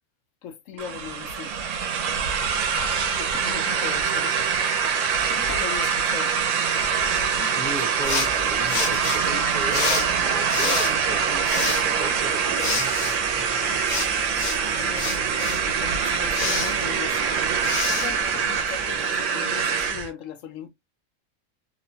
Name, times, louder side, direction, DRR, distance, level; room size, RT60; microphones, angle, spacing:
voice 1, 0.4-1.5 3.1-4.5 4.8-6.3 14.4-17.2 17.8-20.7, left 8 dB, 75° left, 0.9 m, -39 dB
sound 1, 0.8-20.1, right 6 dB, 75° right, 0.9 m, -24 dB
voice 2, 7.4-12.9, right 2 dB, 40° right, 0.8 m, -36 dB
sound 2, 8.0-19.0, left 4 dB, 45° left, 0.6 m, -31 dB
2.8 x 2.1 x 2.6 m
omnidirectional pair, 1.4 m